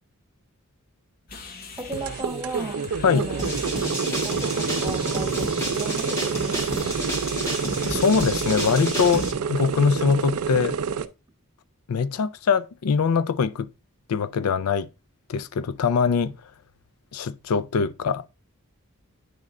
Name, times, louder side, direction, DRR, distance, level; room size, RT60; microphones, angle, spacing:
sound 1, 1.3-9.2, left 3 dB, 40° left, 0.7 m, -41 dB
voice 1, 1.8-3.5 4.0-7.0, right 2 dB, 15° right, 1.1 m, -36 dB
sound 2, 1.9-11.1, right 6 dB, 80° right, 0.5 m, -28 dB
sound 3, 3.4-9.3, equal, 15° left, 1.3 m, -30 dB
voice 2, 7.9-10.8 11.9-13.7 14.1-14.9 15.3-16.3 17.1-18.3, left 6 dB, 90° left, 0.4 m, -23 dB
9.2 x 3.2 x 3.6 m
head